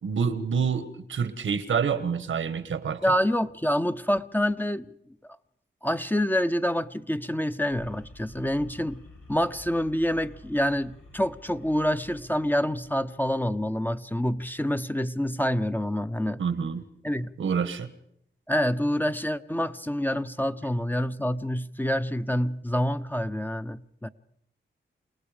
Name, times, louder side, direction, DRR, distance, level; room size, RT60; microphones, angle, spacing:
voice 1, 0.0-3.1 16.4-16.8 17.4-17.9, right 6 dB, 90° right, 12 dB, 1.4 m, -27 dB
voice 2, 3.0-4.9 5.8-9.0 9.3-16.4 17.0-17.3 18.5-24.1, equal, 10° left, 10 dB, 0.8 m, -27 dB
sound 1, 7.7-14.0, left 1 dB, 85° left, 4.7 m, -51 dB
29.0 x 18.5 x 5.1 m, 0.74 s
cardioid pair, 65°, 20 cm